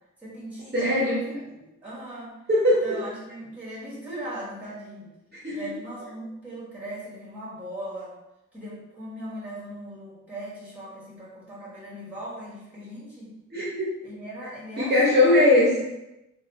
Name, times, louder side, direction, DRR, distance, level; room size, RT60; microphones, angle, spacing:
voice 1, 0.2-2.3 2.8-5.1 5.5-8.1 8.5-13.3 14.0-15.4, right 1 dB, 5° right, -8 dB, 1.3 m, -39 dB
voice 2, 0.7-1.2 2.5-3.0 5.4-5.7 13.5-13.9 14.8-15.8, left 1 dB, 35° right, -8 dB, 0.8 m, -20 dB
3.0 x 2.3 x 4.0 m, 0.94 s
wide cardioid pair, 175°, 30 cm